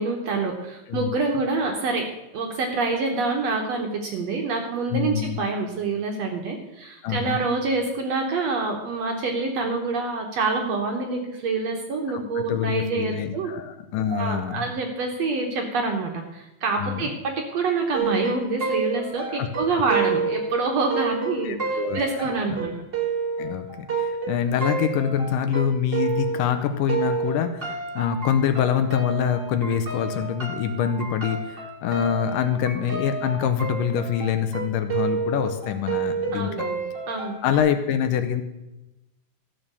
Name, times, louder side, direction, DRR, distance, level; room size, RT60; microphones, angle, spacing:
voice 1, 0.0-2.1 2.3-13.5 14.1-22.7 36.3-36.8 37.1-37.4, right 3 dB, 60° right, 2 dB, 1.9 m, -26 dB
voice 2, 4.9-5.4 7.0-7.4 12.1-14.7 16.8-17.0 19.3-19.5 21.4-22.0 22.5-22.7 23.4-36.7 37.4-38.4, left 8 dB, 75° left, 8 dB, 2.3 m, -25 dB
sound 1, 17.9-26.6 26.9-37.6, right 5 dB, 45° right, 0.7 m, -30 dB
13.5 x 7.3 x 6.8 m, 0.96 s
omnidirectional pair, 4.1 m